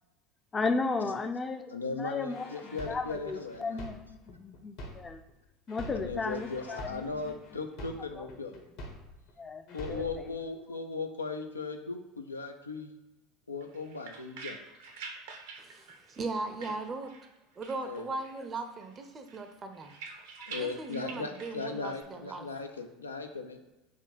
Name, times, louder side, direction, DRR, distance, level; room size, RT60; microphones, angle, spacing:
voice 1, 0.5-5.2 5.7-7.3 8.2-8.6 9.4-10.4 20.4-20.5, left 4 dB, 25° left, 8 dB, 0.5 m, -35 dB
voice 2, 1.7-3.8 6.0-8.6 9.7-12.9 13.5-14.6 17.8-18.1 20.5-23.6, left 4 dB, 90° left, 5 dB, 0.4 m, -38 dB
sound 1, 2.3-5.3 5.7-9.3 9.7-10.3, equal, 60° left, 1.1 m, -45 dB
sound 2, 13.6-17.3 17.6-18.5 18.8-22.0, right 4 dB, 70° right, 0.7 m, -47 dB
voice 3, 15.6-17.1 17.6-19.9 20.6-22.5, right 3 dB, 30° right, 6 dB, 0.6 m, -38 dB
4.4 x 2.8 x 4.0 m, 1.0 s
figure-of-eight pair, 75°, 0 cm